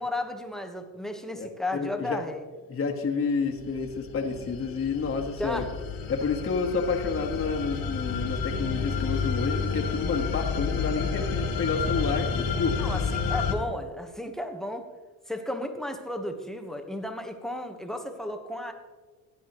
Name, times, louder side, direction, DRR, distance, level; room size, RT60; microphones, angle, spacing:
voice 1, 0.0-2.4 5.4-5.7 12.8-14.9 15.3-18.7, left 1 dB, ahead, 6 dB, 1.2 m, -34 dB
voice 2, 1.3-2.2 2.7-5.6 6.1-12.9, left 4 dB, 40° left, 1 dB, 1.5 m, -29 dB
sound 1, 3.5-13.5, left 5 dB, 70° left, 1.8 m, -30 dB
15.5 x 9.5 x 3.1 m, 1.4 s
cardioid pair, 100°, 36 cm